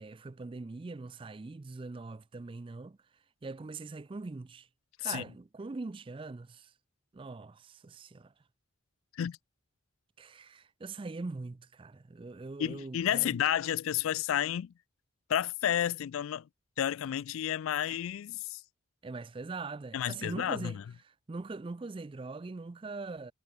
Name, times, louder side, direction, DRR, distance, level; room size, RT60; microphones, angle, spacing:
voice 1, 0.0-3.0 3.4-4.7 5.0-6.7 7.1-8.3 10.2-13.3 19.0-20.8 21.3-23.3, right 3 dB, 25° right, 0.3 m, -42 dB
voice 2, 12.6-14.7 15.3-16.5 16.8-18.6 19.9-20.8, left 10 dB, 80° left, 0.3 m, -31 dB
head